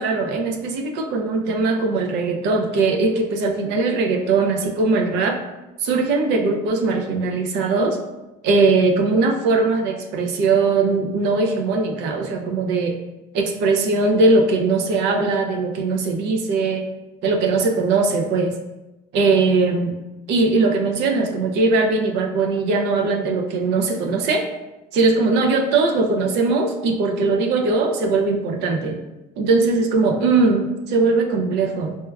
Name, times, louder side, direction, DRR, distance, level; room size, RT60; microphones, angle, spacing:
voice 1, 0.0-5.4 5.8-8.0 8.4-13.0 13.3-16.9 17.2-18.5 19.1-19.9 20.3-24.4 24.9-29.0 29.4-32.0, right 3 dB, 90° right, 2 dB, 0.4 m, -20 dB
4.2 x 2.2 x 2.2 m, 1.0 s
cardioid pair, 110°, 17 cm